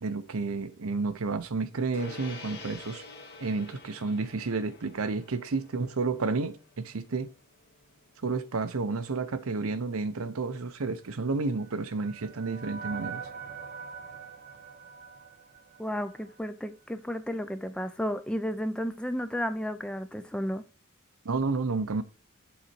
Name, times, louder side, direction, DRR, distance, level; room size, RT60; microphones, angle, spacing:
voice 1, 0.0-3.0 3.4-7.3 8.2-13.2 21.2-22.0, right 4 dB, 75° right, 0.7 m, -31 dB
Gong, 1.9-11.6, left 3 dB, 50° left, 1.1 m, -50 dB
sound 1, 11.1-16.5, right 6 dB, 45° right, 0.8 m, -43 dB
voice 2, 15.8-20.6, equal, 5° left, 0.4 m, -33 dB
7.3 x 4.0 x 4.4 m
head